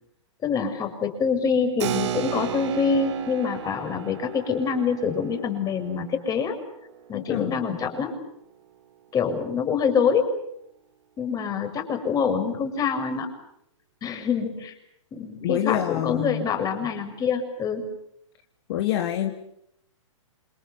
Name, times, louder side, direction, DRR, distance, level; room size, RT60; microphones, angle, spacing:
voice 1, 0.4-6.5 7.1-8.2 9.1-10.3 11.2-13.3 14.0-14.7 15.1-17.9, left 6 dB, 20° left, 7 dB, 6.7 m, -25 dB
Keyboard (musical), 1.8-7.8, right 10 dB, 60° right, 3.2 m, -35 dB
voice 2, 7.1-7.6 15.4-16.4 18.7-19.3, left 12 dB, 50° left, 4 dB, 3.3 m, -26 dB
29.0 x 28.0 x 7.2 m, 0.75 s
hypercardioid pair, 125°, 17 cm